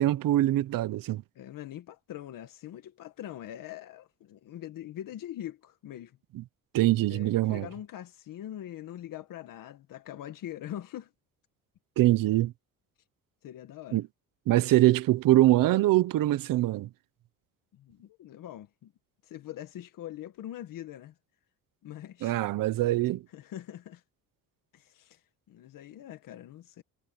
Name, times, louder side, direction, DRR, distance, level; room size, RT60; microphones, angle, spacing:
voice 1, 0.0-1.2 6.3-6.4 6.7-7.7 12.0-12.5 13.9-14.0 14.5-16.9 22.2-23.2, right 15 dB, 70° right, 1.0 m, -23 dB
voice 2, 1.4-6.2 7.1-11.1 13.4-14.0 17.7-18.9 19.2-21.1 21.8-22.4 23.3-24.0 24.7-25.2 25.5-26.8, left 12 dB, 70° left, 1.9 m, -43 dB
cardioid pair, 150°, 34 cm